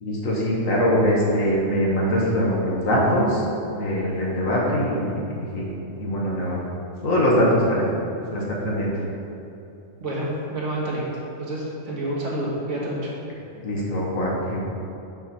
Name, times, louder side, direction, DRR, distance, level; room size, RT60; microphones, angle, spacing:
voice 1, 0.0-3.4 3.7-5.7 6.0-6.6 7.0-7.9 8.3-8.9 13.6-14.6, equal, 80° left, -4 dB, 1.7 m, -22 dB
voice 2, 10.0-11.0 11.4-13.1, right 1 dB, 65° right, -5 dB, 1.8 m, -28 dB
6.5 x 4.3 x 6.2 m, 2.8 s
omnidirectional pair, 1.4 m